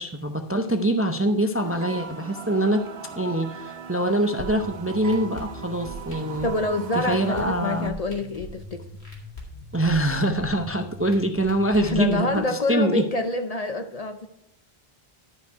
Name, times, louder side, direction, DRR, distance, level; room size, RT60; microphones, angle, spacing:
voice 1, 0.0-2.8 3.2-6.5 6.9-8.0 9.7-13.0, right 1 dB, 15° right, 6 dB, 0.5 m, -24 dB
sound 1, 1.6-7.9, right 7 dB, 70° right, 1.1 m, -39 dB
sound 2, 4.4-12.4, left 1 dB, 85° left, 2.7 m, -41 dB
voice 2, 6.4-8.8 11.8-14.3, left 2 dB, 45° left, 7 dB, 0.7 m, -26 dB
12.0 x 5.6 x 4.6 m, 0.78 s
omnidirectional pair, 1.1 m